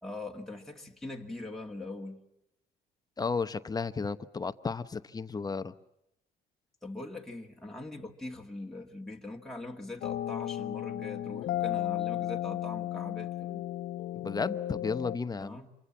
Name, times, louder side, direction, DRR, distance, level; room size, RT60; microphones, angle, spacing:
voice 1, 0.0-2.2 6.8-13.7 15.4-15.7, left 2 dB, ahead, 2.2 m, -42 dB
voice 2, 3.2-5.7 14.1-15.6, left 4 dB, 20° left, 0.9 m, -33 dB
sound 1, 10.0-15.2, left 13 dB, 60° left, 0.9 m, -34 dB
27.5 x 23.5 x 7.3 m
cardioid pair, 110°, 17 cm